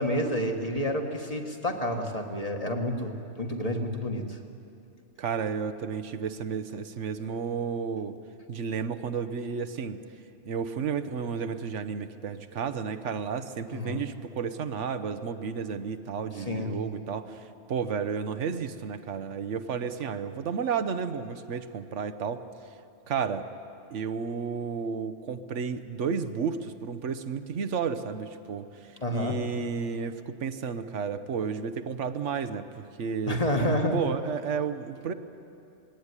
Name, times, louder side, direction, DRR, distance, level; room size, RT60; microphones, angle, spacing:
voice 1, 0.0-4.4 13.7-14.1 16.4-16.7 29.0-29.4 33.3-34.0, left 1 dB, 30° left, 3 dB, 1.7 m, -29 dB
voice 2, 5.2-8.2 8.5-10.0 10.4-22.4 23.1-23.5 23.9-33.4 33.9-35.1, right 6 dB, 75° right, 10 dB, 1.2 m, -32 dB
20.5 x 17.0 x 9.7 m, 2.6 s
omnidirectional pair, 1.2 m